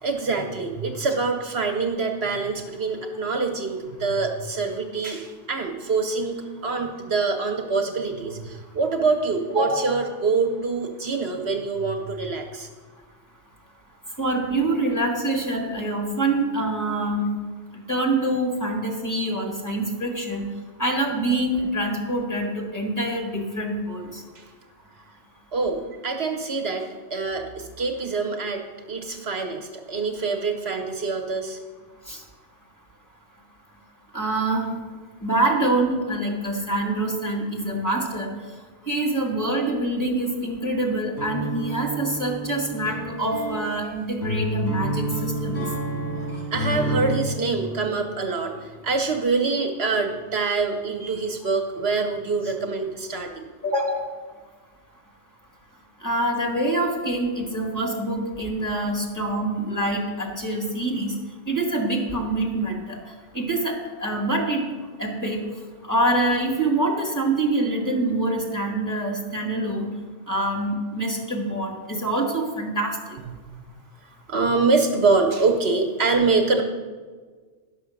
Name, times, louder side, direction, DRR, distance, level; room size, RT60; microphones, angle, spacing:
voice 1, 0.0-12.7 24.3-24.5 25.5-31.6 45.7-53.5 73.5-73.6 74.3-76.6, right 4 dB, 65° right, 4 dB, 1.2 m, -25 dB
voice 2, 9.5-9.9 14.2-17.3 17.9-20.5 20.8-24.2 32.1-32.2 34.1-34.7 35.2-38.3 38.9-45.6 53.6-54.0 56.0-61.1 61.5-63.0 63.3-64.6 65.0-65.4 65.9-69.9 70.3-73.0, right 1 dB, 15° left, 0 dB, 1.8 m, -25 dB
sound 1, 41.2-47.3, right 2 dB, 70° left, 3.6 m, -29 dB
10.5 x 6.3 x 6.4 m, 1.5 s
omnidirectional pair, 1.2 m